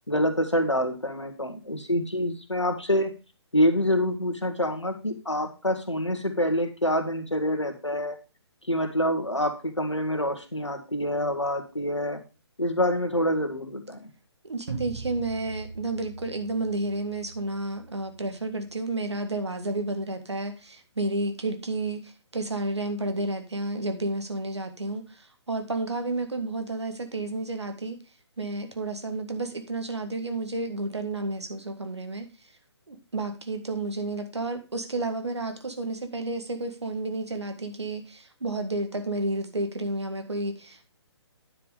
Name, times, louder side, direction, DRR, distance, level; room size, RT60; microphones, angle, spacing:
voice 1, 0.1-3.1 3.5-8.2 8.7-12.2 12.6-14.1, equal, 90° left, 6 dB, 1.8 m, -26 dB
voice 2, 14.4-28.0 28.4-32.3 32.9-40.9, right 2 dB, 70° right, 6 dB, 1.9 m, -31 dB
sound 1, 14.7-19.7, right 4 dB, 50° right, 1.8 m, -42 dB
9.9 x 5.1 x 5.0 m, 0.30 s
figure-of-eight pair, 135°, 15 cm